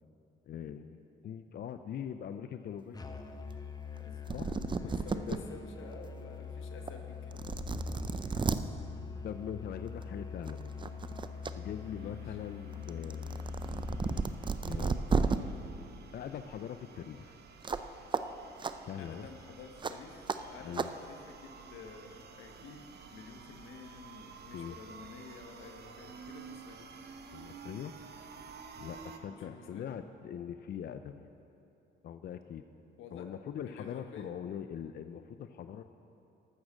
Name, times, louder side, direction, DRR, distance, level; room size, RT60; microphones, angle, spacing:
voice 1, 0.5-1.0 1.2-3.0 4.3-4.5 5.3-5.4 9.2-10.7 11.5-13.5 14.6-15.0 16.1-17.4 18.9-19.3 20.6-20.9 24.5-24.8 27.3-27.9 28.7-31.3 32.0-32.6 33.1-35.8, left 9 dB, 50° left, 9 dB, 0.4 m, -42 dB
Musical instrument, 2.9-14.7, left 5 dB, 20° left, 0.8 m, -43 dB
voice 2, 4.0-4.4 4.8-7.5 12.0-12.4 19.0-26.9 29.3-29.9 33.0-33.3 33.7-34.3, left 5 dB, 85° left, 4 dB, 1.2 m, -51 dB
sound 1, 4.0-4.1 4.3-5.4 5.9-6.0 6.9-7.0 7.3-8.6 9.9-10.1 10.5-11.5 11.9-15.4 17.6-17.9 18.1-18.2 18.6-18.7 19.8-19.9 20.3-20.4 20.7-20.9, right 5 dB, 25° right, 0.5 m, -33 dB
sound 2, 10.5-29.2, right 5 dB, 55° right, 0.9 m, -52 dB
12.5 x 6.4 x 7.2 m, 2.7 s
cardioid pair, 90°, 20 cm